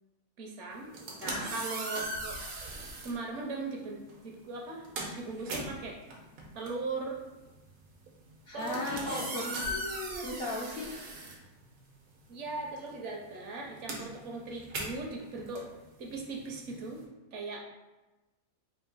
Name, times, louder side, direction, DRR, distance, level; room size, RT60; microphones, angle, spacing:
voice 1, 0.4-0.9 1.5-2.4 3.0-4.9 5.2-6.0 6.5-7.2 8.5-9.3 9.7-10.4 12.3-15.7 16.0-17.0 17.3-17.6, right 3 dB, 65° right, 0 dB, 0.9 m, -39 dB
sound 1, 0.8-3.2 4.1-4.3 4.6-12.1 12.4-17.0, right 1 dB, 85° right, 1.3 m, -39 dB
voice 2, 1.2-1.5 8.5-9.6 10.2-11.0, left 2 dB, 55° left, -3 dB, 0.8 m, -36 dB
3.6 x 2.7 x 3.9 m, 1.1 s
omnidirectional pair, 1.4 m